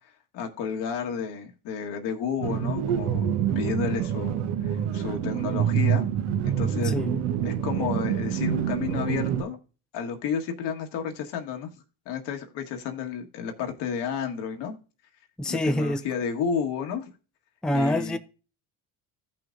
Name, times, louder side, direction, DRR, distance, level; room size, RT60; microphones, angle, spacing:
voice 1, 0.3-3.3 3.5-6.1 6.4-7.0 7.4-9.6 9.9-14.8 15.5-17.1 17.7-18.2, left 6 dB, 70° left, 1.6 m, -31 dB
sound 1, 2.4-9.4, right 9 dB, 70° right, 1.1 m, -26 dB
voice 2, 6.8-7.2 15.4-16.0 17.6-18.2, left 1 dB, ahead, 0.6 m, -25 dB
15.5 x 5.8 x 2.6 m
hypercardioid pair, 65°, 43 cm